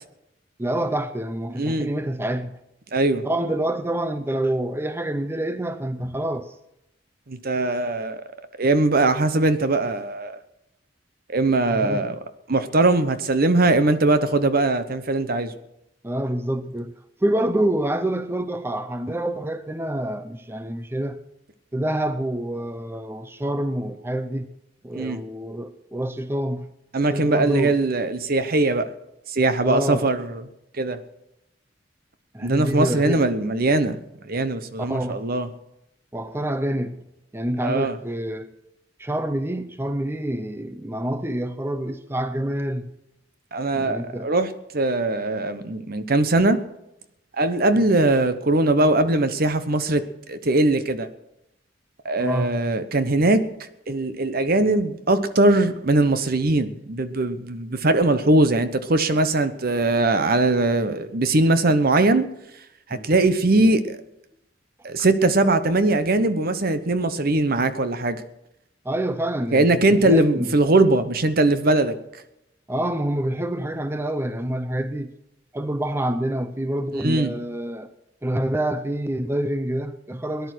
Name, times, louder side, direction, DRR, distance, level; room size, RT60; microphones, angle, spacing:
voice 1, 0.6-2.6 3.2-6.6 11.7-12.1 16.0-16.9 17.2-21.2 21.7-24.5 24.8-26.7 27.1-27.8 29.6-30.1 32.3-33.2 34.8-35.3 36.1-37.0 37.3-38.5 39.0-42.9 43.7-44.3 52.2-52.6 62.9-63.1 68.8-70.5 72.7-75.1 75.5-77.9 78.2-80.5, right 1 dB, 15° right, 0.6 m, -27 dB
voice 2, 1.6-1.9 2.9-3.3 7.3-8.2 8.6-10.4 11.3-12.2 12.5-15.5 24.9-25.2 26.9-28.8 29.3-30.4 30.8-31.0 32.4-34.0 34.2-35.5 37.6-38.0 43.5-46.6 47.4-50.0 50.3-51.1 52.0-53.4 53.9-62.3 62.9-64.0 64.8-68.2 69.5-71.9 77.0-77.3, right 2 dB, 55° right, 1.0 m, -21 dB
18.0 x 10.5 x 6.3 m
head